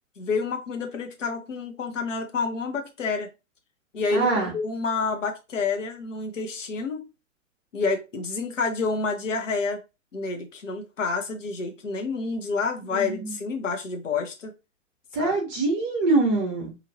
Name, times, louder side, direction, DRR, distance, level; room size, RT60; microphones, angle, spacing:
voice 1, 0.2-3.3 3.9-7.1 7.7-9.8 10.1-14.5 15.2-15.3, left 4 dB, 70° left, 1.0 m, -29 dB
voice 2, 4.1-4.5 12.9-13.3 15.1-16.7, right 3 dB, 35° right, 0.9 m, -24 dB
3.0 x 2.7 x 2.8 m
figure-of-eight pair, 110°, 39 cm